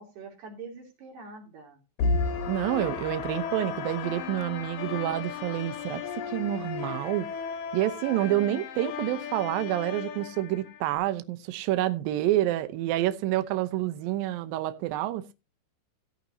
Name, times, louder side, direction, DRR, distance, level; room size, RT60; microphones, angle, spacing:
voice 1, 0.0-1.8, right 4 dB, 60° right, 4.6 m, -44 dB
sound 1, 2.0-11.0, left 5 dB, 70° left, 2.2 m, -34 dB
voice 2, 2.5-6.0 6.3-7.3 7.7-15.3, right 14 dB, 90° right, 2.0 m, -28 dB
16.0 x 9.0 x 2.8 m
omnidirectional pair, 5.3 m